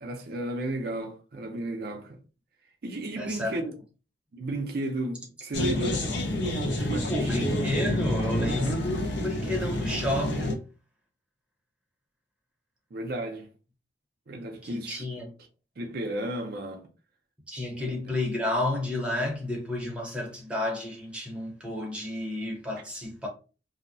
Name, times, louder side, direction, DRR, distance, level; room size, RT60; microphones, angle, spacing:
voice 1, 0.0-2.2 2.8-3.7 4.3-6.1 6.6-7.5 12.9-13.5 14.3-15.1 15.8-16.9 17.8-17.9, right 1 dB, 55° right, 0.4 m, -34 dB
voice 2, 3.2-3.6 6.7-10.6 14.6-15.3 17.5-23.3, left 1 dB, 5° right, 0.7 m, -31 dB
sound 1, 5.5-10.5, left 1 dB, 70° left, 0.6 m, -28 dB
2.6 x 2.0 x 2.5 m
head